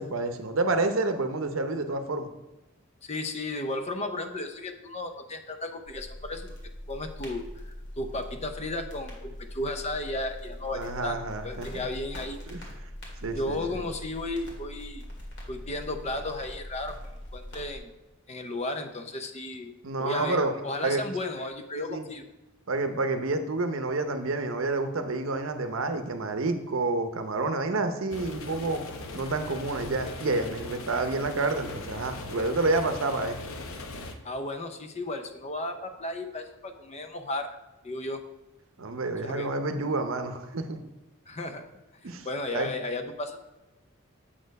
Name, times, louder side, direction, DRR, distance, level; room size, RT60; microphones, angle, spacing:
voice 1, 0.0-2.3 10.7-11.8 12.5-12.6 13.2-13.8 19.8-21.0 21.8-22.0 22.7-28.8 29.1-33.4 38.8-40.8 42.0-42.3 42.5-42.7, right 3 dB, 65° right, 8 dB, 0.7 m, -29 dB
voice 2, 3.0-6.5 6.9-11.2 11.4-12.4 13.3-15.1 15.5-17.0 17.3-17.9 18.3-19.7 20.0-22.2 34.2-37.6 37.8-38.2 39.2-39.5 41.3-41.7 42.0-43.5, left 2 dB, 30° left, 7 dB, 0.6 m, -34 dB
sound 1, 5.8-17.8, left 1 dB, 55° left, 1.9 m, -42 dB
sound 2, 28.1-34.1, left 2 dB, 75° left, 0.8 m, -39 dB
7.5 x 4.3 x 5.2 m, 1.0 s
head